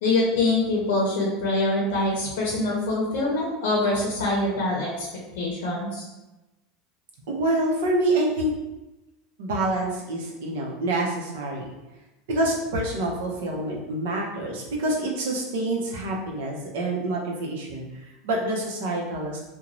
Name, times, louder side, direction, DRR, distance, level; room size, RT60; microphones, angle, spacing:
voice 1, 0.0-5.1 5.4-6.0, left 2 dB, 80° left, -4 dB, 0.6 m, -24 dB
voice 2, 7.3-8.5 9.4-11.7 12.3-19.4, right 1 dB, 90° right, -1 dB, 0.6 m, -27 dB
3.0 x 2.2 x 2.5 m, 1.0 s
supercardioid pair, 175°, 0 cm